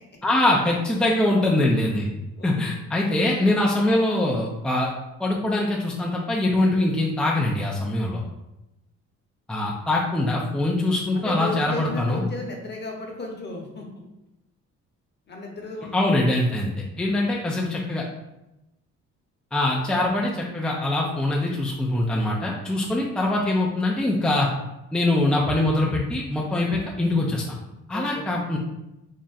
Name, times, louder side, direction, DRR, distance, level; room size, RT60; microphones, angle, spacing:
voice 1, 0.2-2.1 2.4-4.9 5.2-8.2 9.5-12.2 15.9-16.7 17.0-18.0 19.5-24.5 24.9-27.6 27.9-28.6, left 1 dB, 5° left, -3 dB, 0.4 m, -23 dB
voice 2, 2.3-2.8 11.1-13.9 15.3-16.3 27.9-28.2, left 2 dB, 35° left, 1 dB, 0.9 m, -34 dB
3.6 x 2.1 x 4.1 m, 0.93 s
cardioid pair, 90°, 30 cm